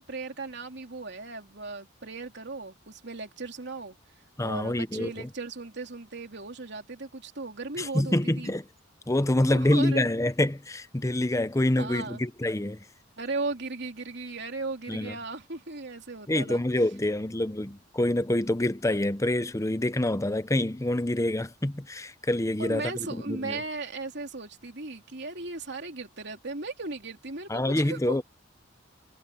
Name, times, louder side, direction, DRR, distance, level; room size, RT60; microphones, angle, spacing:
voice 1, 0.0-4.0 4.4-8.5 9.4-10.1 11.8-12.2 13.2-16.6 22.6-28.2, right 3 dB, 60° right, 3.3 m, -37 dB
voice 2, 4.4-5.3 7.8-8.7 9.1-12.8 14.9-15.1 16.3-23.6 27.5-28.2, left 1 dB, 15° left, 0.8 m, -26 dB
head